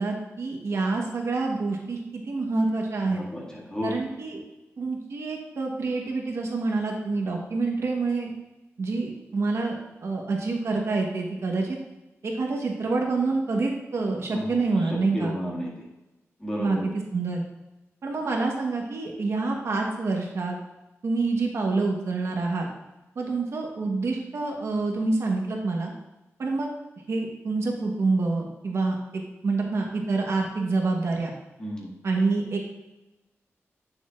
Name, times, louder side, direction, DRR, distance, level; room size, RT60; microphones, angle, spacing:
voice 1, 0.0-3.2 3.8-4.4 4.8-8.3 8.8-11.8 12.2-15.4 16.6-16.8 17.1-17.4 18.0-20.6 21.0-22.7 23.1-25.9 26.4-26.7 27.1-31.3 32.0-32.7, right 3 dB, 65° right, 0 dB, 1.2 m, -27 dB
voice 2, 3.1-3.9 14.3-14.4 15.1-15.7 16.4-16.9 31.6-31.9, equal, 15° left, -4 dB, 2.0 m, -32 dB
9.1 x 6.9 x 2.5 m, 1.0 s
wide cardioid pair, 150°, 5 cm